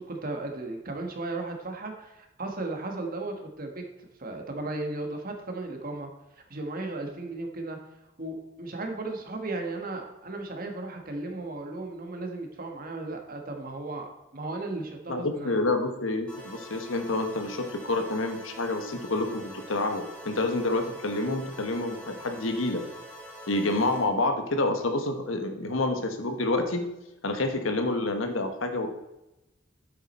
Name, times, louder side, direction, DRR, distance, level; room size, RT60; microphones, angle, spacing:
voice 1, 0.0-3.8 4.2-6.1 6.5-7.8 8.2-15.6, right 2 dB, 45° right, 3 dB, 1.4 m, -35 dB
voice 2, 15.1-22.8 23.5-26.8 27.2-28.9, left 2 dB, 90° left, 6 dB, 1.2 m, -28 dB
sound 1, 16.3-24.1, equal, 5° left, 2.8 m, -45 dB
8.3 x 7.5 x 4.2 m, 0.95 s
head